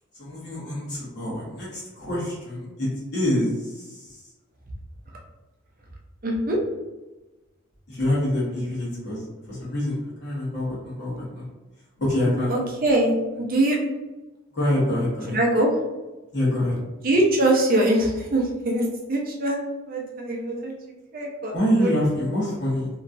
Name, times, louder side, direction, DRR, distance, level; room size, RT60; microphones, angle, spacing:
voice 1, 0.2-2.9 3.1-4.2 7.9-11.4 12.0-12.5 14.5-15.4 16.3-16.8 21.5-22.9, left 1 dB, 50° left, -7 dB, 1.2 m, -26 dB
voice 2, 6.2-6.6 12.5-13.1 13.4-13.8 15.3-15.8 17.0-19.6 19.9-20.7 21.1-21.5 21.8-21.9, right 1 dB, 40° right, -1 dB, 0.6 m, -22 dB
2.9 x 2.3 x 2.6 m, 1.1 s
head